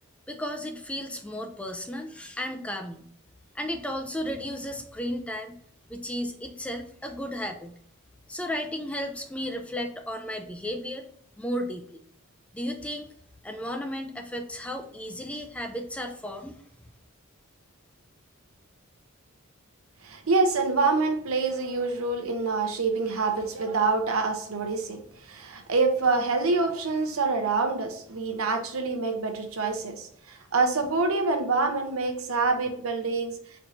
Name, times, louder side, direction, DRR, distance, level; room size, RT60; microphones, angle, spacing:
voice 1, 0.3-3.0 3.5-5.6 5.9-7.8 8.3-11.1 11.4-12.0 12.5-13.1 13.4-16.5, equal, 5° left, 4 dB, 0.4 m, -34 dB
voice 2, 20.0-33.4, right 3 dB, 80° right, 5 dB, 0.8 m, -26 dB
4.4 x 2.6 x 4.3 m, 0.64 s
head